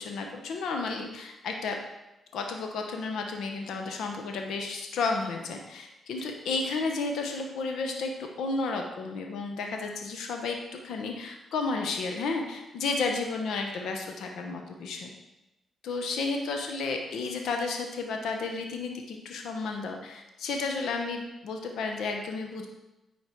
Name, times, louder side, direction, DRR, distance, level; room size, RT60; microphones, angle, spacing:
voice 1, 0.0-1.8 2.3-15.1 15.8-22.7, left 3 dB, 80° left, 3 dB, 1.0 m, -32 dB
9.3 x 4.8 x 4.6 m, 0.97 s
cardioid pair, 75°, 0 cm